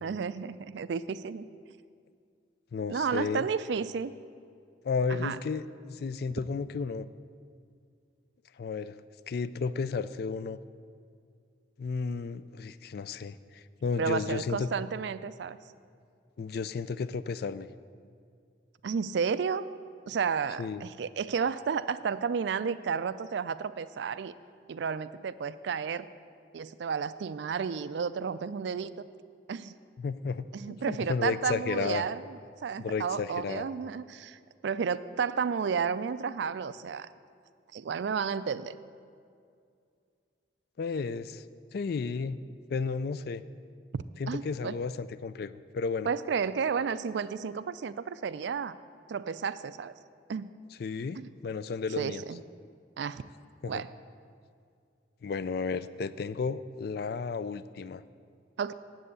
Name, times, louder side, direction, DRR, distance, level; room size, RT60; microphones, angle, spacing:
voice 1, 0.0-1.4 2.9-4.1 5.1-5.4 14.0-15.6 18.8-19.7 20.1-24.3 24.7-26.1 26.5-28.9 29.5-29.7 30.5-37.1 37.7-38.8 43.9-44.8 46.1-48.8 49.1-49.9 50.3-50.5 51.2-51.3 52.0-52.4 53.0-53.2 53.7-53.9 58.6-58.7, right 6 dB, 65° right, 15 dB, 0.3 m, -32 dB
voice 2, 2.7-3.4 4.8-7.1 8.6-8.9 9.3-10.6 11.8-14.7 16.4-17.7 20.6-20.8 30.0-32.0 32.8-33.7 40.8-41.4 41.7-42.4 42.7-43.4 44.2-46.1 50.8-52.2 53.6-53.8 55.2-58.0, left 5 dB, 55° left, 15 dB, 0.3 m, -33 dB
7.8 x 7.7 x 8.2 m, 2.3 s
head